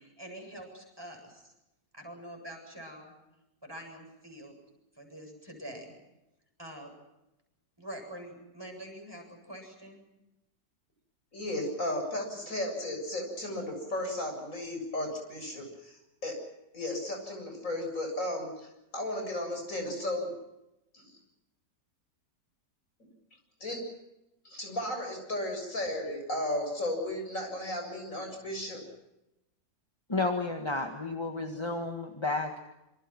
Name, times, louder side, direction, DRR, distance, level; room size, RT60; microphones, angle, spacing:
voice 1, 0.0-1.5 1.9-3.1 3.6-4.6 5.0-5.9 6.6-6.9 7.8-10.0, right 1 dB, 15° right, 2 dB, 8.1 m, -45 dB
voice 2, 11.3-16.4 16.7-20.3 20.9-21.1 23.6-23.8 24.4-28.8, left 1 dB, 50° left, 4 dB, 7.8 m, -34 dB
voice 3, 30.1-32.6, left 3 dB, 15° left, 3 dB, 1.8 m, -32 dB
27.5 x 26.5 x 6.1 m, 0.92 s
omnidirectional pair, 1.8 m